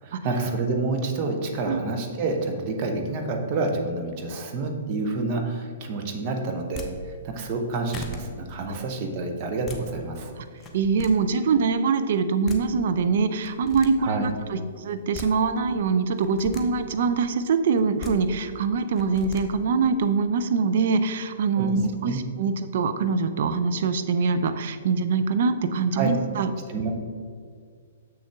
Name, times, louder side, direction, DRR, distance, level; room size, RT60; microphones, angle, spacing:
voice 1, 0.0-10.3 14.0-14.3 21.6-21.8 22.0-22.2 25.9-26.1 26.7-26.9, right 3 dB, 35° right, 3 dB, 1.0 m, -28 dB
sound 1, 6.6-6.9 7.6-7.7 7.9-8.2 9.4-9.8 10.5-11.1 12.2-12.3 12.4-12.6 13.4-13.9 14.9-15.3 16.2-16.6 17.8-18.1 19.0-19.4, left 2 dB, 15° left, 0.8 m, -38 dB
voice 2, 10.7-26.5, right 5 dB, 50° right, 9 dB, 0.5 m, -24 dB
6.9 x 6.3 x 3.4 m, 2.1 s
figure-of-eight pair, 115°, 0 cm